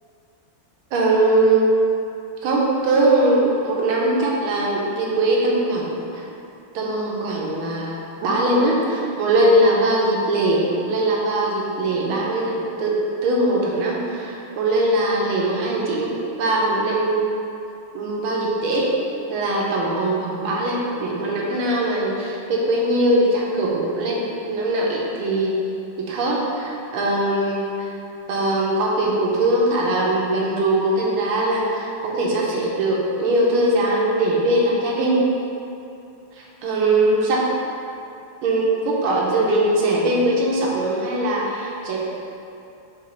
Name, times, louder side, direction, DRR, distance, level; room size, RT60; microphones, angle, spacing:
voice 1, 0.9-1.7 2.4-6.3 6.7-12.9 13.2-16.1 16.4-17.4 17.9-18.9 19.3-25.5 26.0-27.9 28.3-35.2 36.4-37.4 38.4-42.0, right 1 dB, 80° right, -3 dB, 1.7 m, -21 dB
6.2 x 3.4 x 4.5 m, 2.6 s
omnidirectional pair, 2.4 m